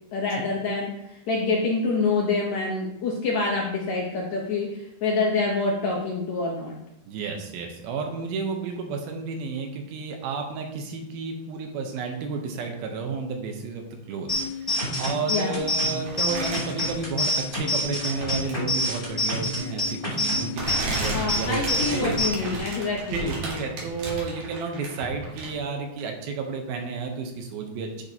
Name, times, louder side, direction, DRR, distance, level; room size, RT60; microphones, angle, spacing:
voice 1, 0.1-6.7 15.3-15.6 21.1-23.2, left 3 dB, 75° left, -2 dB, 1.6 m, -26 dB
voice 2, 7.1-22.8 23.1-28.0, right 4 dB, 75° right, 3 dB, 2.6 m, -32 dB
sound 1, 14.3-22.3, left 1 dB, 10° left, 1.9 m, -28 dB
sound 2, 16.1-17.6 18.0-18.7 19.7-19.9 20.5-25.7 26.0-26.1, right 2 dB, 55° right, 3.0 m, -34 dB
10.5 x 6.4 x 2.8 m, 0.84 s
omnidirectional pair, 4.6 m